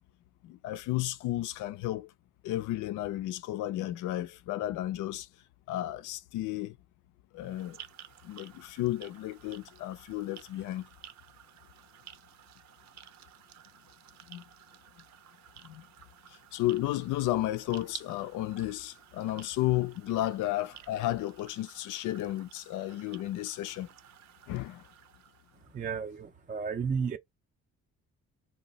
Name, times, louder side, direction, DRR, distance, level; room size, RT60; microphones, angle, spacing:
voice 1, 0.6-2.1 2.4-5.3 5.7-6.7 7.3-7.8 8.3-10.8 14.3-14.4 16.5-23.9 24.5-24.8, left 15 dB, 85° left, 0.5 m, -33 dB
sound 1, 7.4-25.8, right 10 dB, 65° right, 0.6 m, -53 dB
voice 2, 25.7-27.2, right 6 dB, 25° right, 0.4 m, -33 dB
2.6 x 2.1 x 3.8 m
cardioid pair, 90°, 30 cm